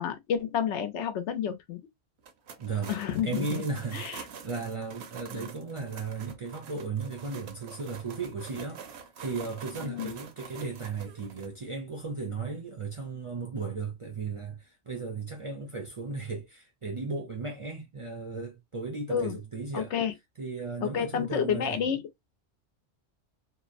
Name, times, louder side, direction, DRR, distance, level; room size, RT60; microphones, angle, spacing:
voice 1, 0.0-1.8 2.9-3.6 3.9-4.2 9.8-10.1 19.1-19.4 19.7-20.1 20.8-22.0, left 8 dB, 80° left, 0.9 m, -30 dB
sound 1, 2.2-11.5, right 6 dB, 70° right, 0.9 m, -46 dB
voice 2, 2.6-19.9 20.4-21.8, right 4 dB, 40° right, 0.4 m, -36 dB
2.8 x 2.0 x 2.4 m
omnidirectional pair, 1.2 m